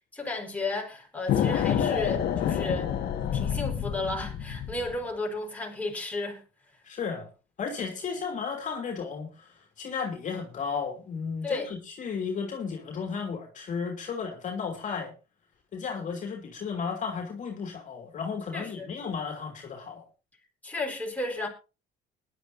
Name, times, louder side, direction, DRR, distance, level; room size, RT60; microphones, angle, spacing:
voice 1, 0.1-2.9 3.3-6.4 11.4-11.7 18.5-18.9 20.6-21.5, left 2 dB, 10° left, 4.6 m, -33 dB
sound 1, 1.3-5.0, left 9 dB, 65° left, 1.8 m, -28 dB
voice 2, 6.8-7.3 7.6-15.1 15.7-20.0, left 5 dB, 50° left, 3.0 m, -34 dB
20.5 x 11.0 x 2.8 m
cardioid pair, 110°, 17 cm